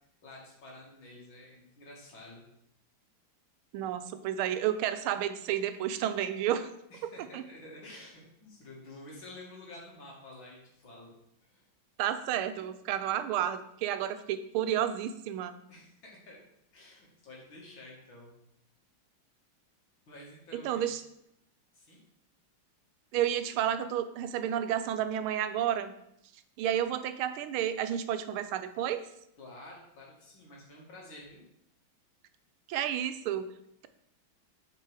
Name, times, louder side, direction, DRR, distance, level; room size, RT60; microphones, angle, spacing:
voice 1, 0.2-2.4 6.9-11.1 11.4-11.6 12.5-12.7 15.7-16.4 16.7-18.3 20.1-20.9 21.7-22.0 29.4-31.4, left 1 dB, 65° left, -3 dB, 2.8 m, -50 dB
voice 2, 3.7-6.7 7.3-7.4 12.0-15.6 20.5-21.0 23.1-25.9 26.6-29.1 32.7-33.6, right 10 dB, 85° right, 11 dB, 1.5 m, -31 dB
7.6 x 5.2 x 4.8 m, 0.77 s
omnidirectional pair, 2.3 m